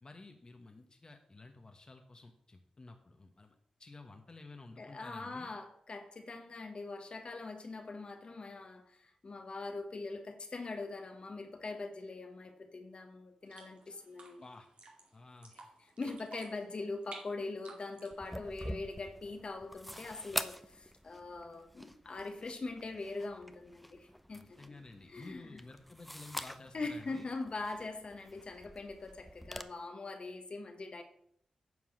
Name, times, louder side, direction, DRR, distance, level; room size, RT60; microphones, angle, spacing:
voice 1, 0.0-5.5 14.4-14.7 15.1-15.5 24.3-27.3, left 3 dB, 40° left, 1.3 m, -52 dB
voice 2, 4.8-14.4 16.0-24.8 25.1-25.6 26.7-31.0, left 3 dB, 55° left, 1.4 m, -42 dB
sound 1, 13.4-19.0, right 3 dB, 70° right, 2.3 m, -55 dB
sound 2, 18.1-29.6, equal, ahead, 0.8 m, -46 dB
9.6 x 4.7 x 7.5 m
cardioid pair, 45°, 2 cm